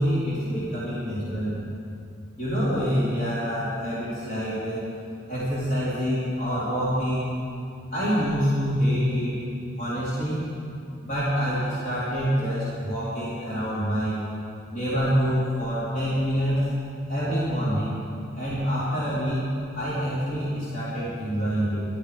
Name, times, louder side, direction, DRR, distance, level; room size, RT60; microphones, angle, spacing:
voice 1, 0.0-1.6 2.4-4.8 5.3-7.3 7.9-9.4 9.8-10.4 11.0-14.2 14.7-16.6 17.1-18.0 18.3-19.4 19.8-21.9, equal, 45° left, -10 dB, 3.9 m, -26 dB
15.5 x 13.5 x 5.0 m, 2.5 s
head